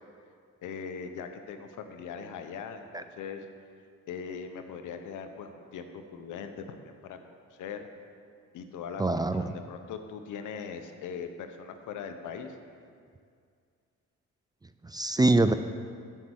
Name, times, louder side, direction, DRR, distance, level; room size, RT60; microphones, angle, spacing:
voice 1, 0.6-3.5 4.1-7.2 7.5-7.9 8.5-12.6, left 6 dB, 80° left, 7 dB, 1.0 m, -40 dB
voice 2, 9.0-9.5 14.8-15.5, right 2 dB, 15° right, 10 dB, 0.4 m, -24 dB
13.0 x 5.6 x 6.4 m, 2.2 s
cardioid pair, 90°, 30 cm